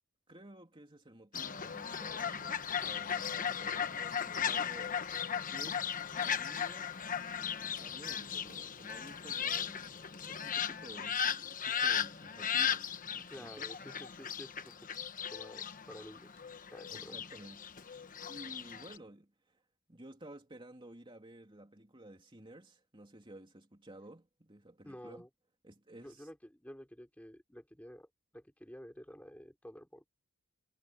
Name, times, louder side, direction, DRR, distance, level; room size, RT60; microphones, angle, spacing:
voice 1, 0.3-5.0 5.5-5.9 6.1-7.0 7.2-13.7 16.9-17.7 18.3-19.6 19.9-25.3 25.6-26.3, right 1 dB, 25° right, 2.8 m, -53 dB
Fowl, 1.3-19.0, left 8 dB, 40° left, 1.1 m, -37 dB
voice 2, 13.3-14.8 15.3-16.3 16.7-17.2 24.8-25.3 26.0-30.1, equal, 5° left, 3.6 m, -51 dB
head